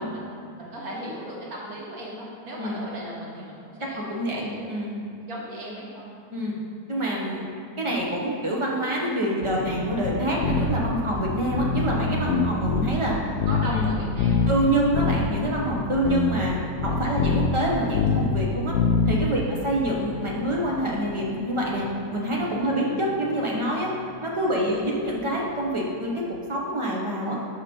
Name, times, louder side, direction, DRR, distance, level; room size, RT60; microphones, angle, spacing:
voice 1, 0.0-4.6 5.2-6.6 11.1-11.4 13.4-14.5 17.1-17.4 19.4-19.5 22.6-22.8 24.6-24.8, right 1 dB, 70° right, -5 dB, 1.8 m, -38 dB
voice 2, 3.9-5.0 6.3-6.5 6.9-7.5 7.8-13.2 13.6-13.9 14.5-18.7 19.1-21.9 22.1-23.9 24.2-26.2 26.5-27.4, right 1 dB, 25° right, -3 dB, 0.7 m, -26 dB
sound 1, 9.4-26.5, left 4 dB, 70° left, 0.6 m, -37 dB
sound 2, 10.0-10.1 10.4-10.9 11.2-13.1 13.4-13.9 14.2-14.6 14.9-15.2 15.7-15.8 16.1-18.5 18.7-19.2, left 5 dB, 85° left, 1.1 m, -24 dB
5.9 x 5.2 x 4.3 m, 2.5 s
omnidirectional pair, 1.6 m